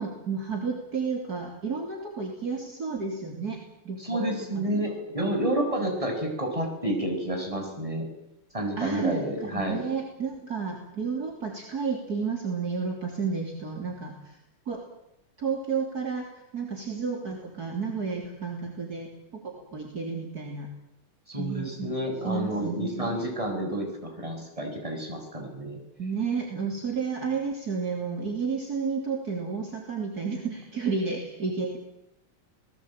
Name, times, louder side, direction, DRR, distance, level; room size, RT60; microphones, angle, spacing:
voice 1, 0.0-4.7 8.8-14.4 14.7-14.8 15.4-16.3 16.5-20.7 21.4-21.9 22.2-23.2 26.0-31.8, right 5 dB, 45° right, 1 dB, 3.7 m, -31 dB
voice 2, 4.0-8.1 8.5-9.8 21.3-25.8, right 1 dB, 15° right, 2 dB, 6.6 m, -30 dB
28.5 x 19.5 x 8.9 m, 0.84 s
omnidirectional pair, 2.4 m